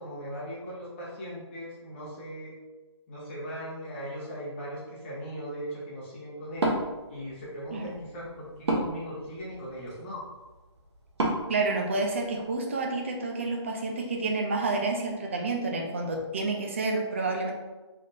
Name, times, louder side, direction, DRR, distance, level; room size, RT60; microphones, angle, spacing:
voice 1, 0.0-2.5 3.1-6.8 7.1-10.2, equal, 25° left, -7 dB, 1.2 m, -39 dB
Wood, 6.5-12.6, right 1 dB, 65° right, 1.0 m, -34 dB
voice 2, 11.5-17.5, right 3 dB, 25° right, 2 dB, 0.4 m, -29 dB
3.8 x 3.5 x 2.7 m, 1.2 s
hypercardioid pair, 165°, 15 cm